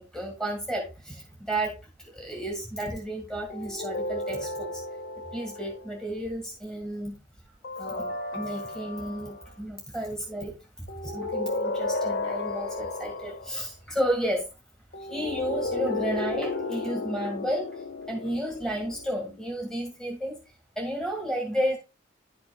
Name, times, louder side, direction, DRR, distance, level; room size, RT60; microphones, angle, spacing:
voice 1, 0.1-1.8 2.2-4.7 5.3-7.1 7.8-10.5 11.1-14.5 15.1-17.7 18.1-20.4 20.8-21.8, right 1 dB, 5° left, 1 dB, 1.8 m, -32 dB
sound 1, 3.5-6.0 7.6-9.5 10.9-13.6 14.9-19.5, left 2 dB, 65° left, 0.9 m, -33 dB
11.0 x 6.0 x 2.3 m, 0.26 s
head